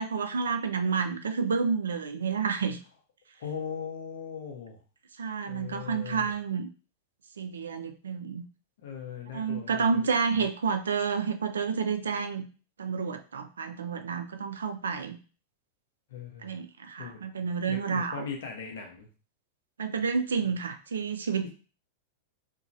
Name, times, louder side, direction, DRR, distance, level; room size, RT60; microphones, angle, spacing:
voice 1, 0.0-2.8 5.2-6.7 7.4-8.5 9.3-12.5 12.8-15.2 16.4-18.3 19.8-21.5, right 5 dB, 75° right, 8 dB, 0.3 m, -30 dB
voice 2, 3.4-4.8 5.4-6.3 8.8-10.1 10.3-10.5 16.1-16.6 17.0-17.2 17.7-19.1 21.4-21.5, left 7 dB, 60° left, 2 dB, 0.6 m, -39 dB
2.8 x 2.2 x 2.6 m, 0.36 s
figure-of-eight pair, 95°, 0 cm